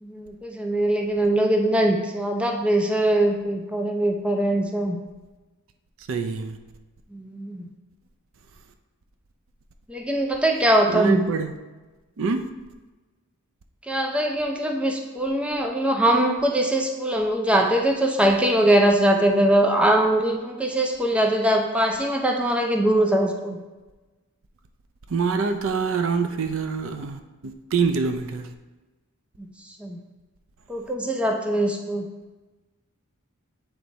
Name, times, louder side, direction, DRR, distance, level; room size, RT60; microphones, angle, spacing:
voice 1, 0.0-5.0 7.1-7.7 9.9-11.2 13.9-23.6 29.4-29.5 29.8-30.0 30.7-32.1, right 1 dB, 5° right, 2 dB, 0.5 m, -22 dB
voice 2, 6.1-6.6 10.9-11.5 12.2-12.5 25.1-28.5, right 5 dB, 65° right, 7 dB, 0.5 m, -25 dB
7.9 x 3.4 x 4.0 m, 1.2 s
head